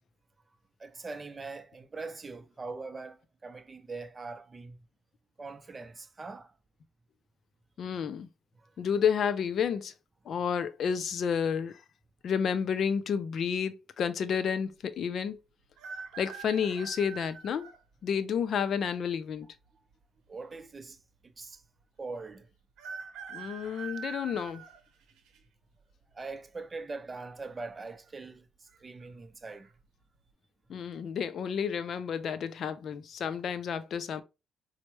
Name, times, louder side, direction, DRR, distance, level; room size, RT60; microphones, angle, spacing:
voice 1, 0.8-4.8 5.4-6.5 20.3-21.0 21.2-21.6 22.0-22.5 26.1-28.5 28.8-29.7, right 3 dB, 30° right, 0.5 m, -42 dB
voice 2, 7.8-8.3 8.8-9.9 10.3-11.8 12.2-15.4 16.2-17.7 18.0-19.5 23.3-24.6 30.7-34.2, left 7 dB, 60° left, 0.4 m, -30 dB
sound 1, 15.8-17.8 18.5-18.6 19.7-20.3 20.6-20.7 20.9-21.0 22.8-25.4 25.9-26.3 27.4-27.8 28.1-28.2 28.7-29.1 29.5-29.7, right 5 dB, 80° right, 0.7 m, -44 dB
4.3 x 2.0 x 3.0 m
cardioid pair, 90°, 0 cm